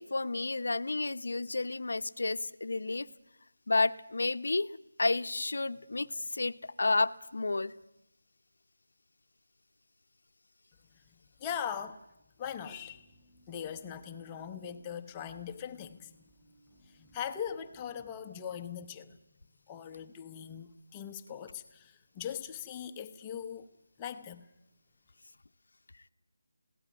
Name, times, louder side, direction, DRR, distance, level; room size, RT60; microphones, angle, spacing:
voice 1, 0.0-3.1 3.7-4.7 5.0-7.7, left 3 dB, 65° left, 11 dB, 0.8 m, -31 dB
voice 2, 11.4-12.0 12.4-13.1 13.5-16.3 16.8-19.2 19.7-23.7 24.0-24.5, left 8 dB, 10° left, 6 dB, 0.8 m, -40 dB
sound 1, 12.4-18.1, right 2 dB, 10° right, 5.0 m, -63 dB
21.5 x 17.0 x 9.4 m, 0.88 s
figure-of-eight pair, 175°, 0 cm